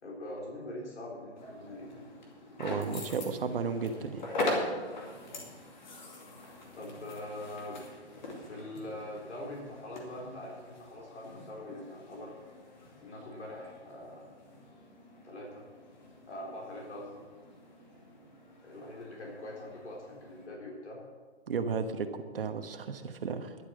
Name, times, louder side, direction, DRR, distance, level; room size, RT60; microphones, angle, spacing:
voice 1, 0.0-2.1 6.7-7.8 8.4-12.3 13.0-14.3 15.2-15.6 16.3-17.2 18.6-21.0, left 1 dB, 85° left, -2 dB, 4.0 m, -43 dB
sound 1, 1.3-20.5, left 2 dB, 45° left, 2.4 m, -42 dB
voice 2, 2.6-4.2 21.5-23.6, right 5 dB, 55° right, 8 dB, 1.2 m, -34 dB
11.5 x 8.6 x 7.5 m, 1.5 s
hypercardioid pair, 175°, 34 cm